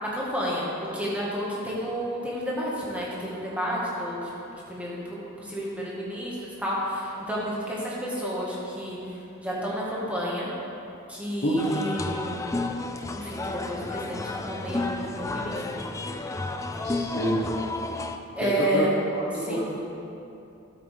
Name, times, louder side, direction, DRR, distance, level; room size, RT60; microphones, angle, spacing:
voice 1, 0.0-4.3 4.7-10.5 11.1-12.6 13.1-15.9 18.3-18.9 19.4-19.7, equal, 5° right, -6 dB, 1.5 m, -31 dB
voice 2, 11.4-11.8 16.8-17.4 18.4-18.9 19.3-19.8, equal, 50° left, -6 dB, 1.2 m, -27 dB
sound 1, 11.6-18.2, left 2 dB, 15° left, 0.3 m, -32 dB
12.0 x 8.2 x 3.4 m, 2.8 s
head